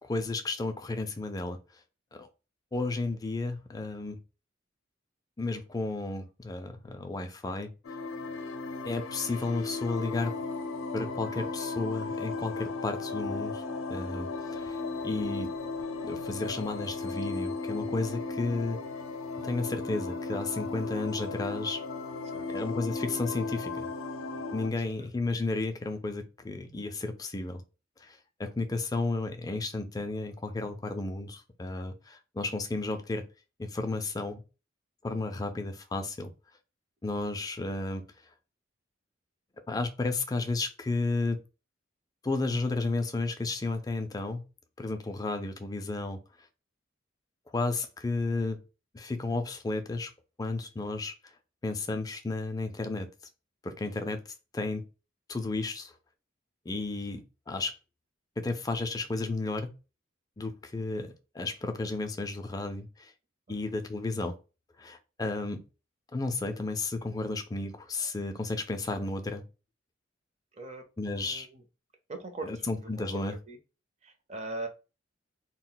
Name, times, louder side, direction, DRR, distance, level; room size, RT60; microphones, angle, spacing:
voice 1, 0.0-1.6 2.1-2.3 2.7-4.2 5.4-7.7 8.8-10.3 10.9-13.6 13.9-15.5 16.0-18.8 19.4-21.8 22.5-23.9 24.5-27.6 28.0-33.2 33.6-34.4 35.0-36.3 37.0-38.0 39.7-41.4 42.2-44.4 44.8-46.2 47.5-48.6 48.9-50.1 50.4-51.1 51.6-53.1 53.6-54.2 54.5-54.8 55.3-55.9 56.7-57.7 58.4-59.7 60.4-63.1 63.5-64.4 64.8-65.6 66.1-69.4 71.0-71.5 72.4-73.4, left 3 dB, 20° left, 6 dB, 0.4 m, -33 dB
sound 1, 7.8-24.7, left 3 dB, 90° left, 0.5 m, -35 dB
voice 2, 70.5-71.6 72.1-72.7 73.0-73.6 74.0-74.7, right 2 dB, 35° right, 5 dB, 0.6 m, -41 dB
2.3 x 2.1 x 3.8 m, 0.31 s
head